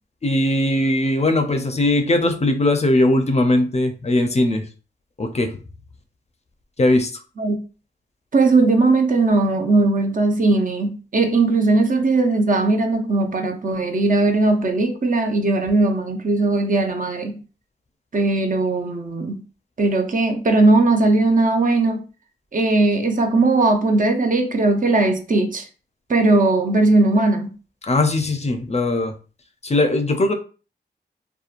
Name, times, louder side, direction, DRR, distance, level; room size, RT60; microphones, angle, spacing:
voice 1, 0.2-4.6 5.2-5.5 6.8-7.1 27.8-29.1 29.6-30.3, left 1 dB, 35° left, 0.5 m, -19 dB
voice 2, 8.3-17.4 18.1-19.4 19.8-22.0 22.5-25.6 26.1-27.5, right 2 dB, 45° right, 0.5 m, -18 dB
2.8 x 2.2 x 2.4 m
cardioid pair, 60°, 19 cm